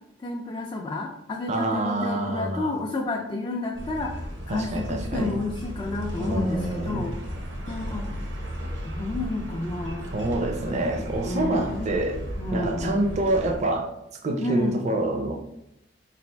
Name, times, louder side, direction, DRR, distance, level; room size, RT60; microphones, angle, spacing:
voice 1, 0.2-7.2 7.7-8.1 8.9-10.1 11.2-12.0 12.4-13.1 14.4-14.8, left 2 dB, 25° left, -1 dB, 0.4 m, -31 dB
voice 2, 1.5-2.8 4.5-5.4 6.2-7.1 10.1-12.2 12.5-13.9 14.2-15.3, right 1 dB, 40° right, 2 dB, 0.4 m, -26 dB
sound 1, 3.7-13.6, equal, 80° right, 0.8 m, -35 dB
4.1 x 2.4 x 3.3 m, 0.81 s
head